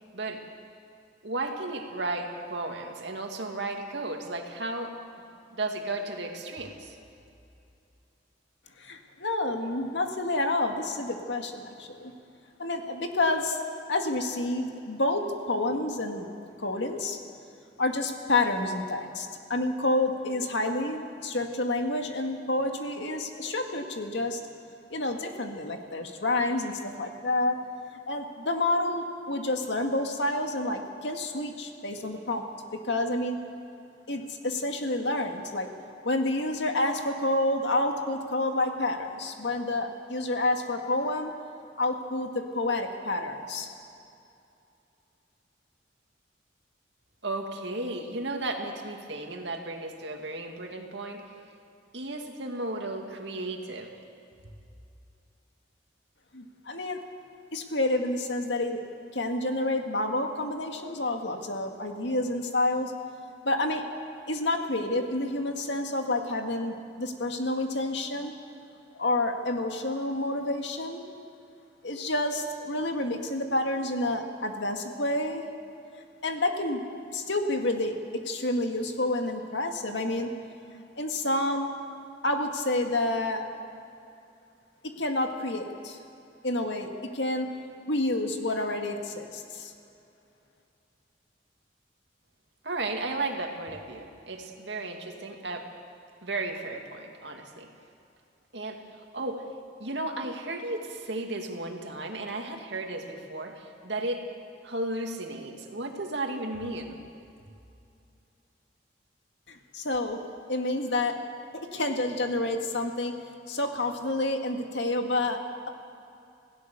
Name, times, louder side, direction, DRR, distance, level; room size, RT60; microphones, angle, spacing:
voice 1, 1.2-5.0 5.5-7.0 47.2-51.2 51.9-53.9 92.6-95.7 96.2-97.7 98.5-99.4 99.8-104.3 104.6-107.0, right 2 dB, 70° right, 3 dB, 2.3 m, -34 dB
voice 2, 8.8-12.1 12.6-13.6 13.9-17.2 17.8-24.4 24.9-27.6 28.1-32.4 32.8-33.4 34.1-35.7 36.0-41.3 41.8-43.7 56.3-57.0 57.5-58.8 59.1-62.9 63.4-63.8 64.3-68.3 69.0-71.0 71.8-75.4 76.2-76.8 77.1-80.3 80.7-81.7 82.2-83.5 85.0-86.0 86.4-87.5 87.9-89.7 109.5-110.2 110.5-111.2 111.7-113.1 113.5-115.4, left 2 dB, 70° left, 4 dB, 2.0 m, -29 dB
27.0 x 16.5 x 6.8 m, 2.7 s
head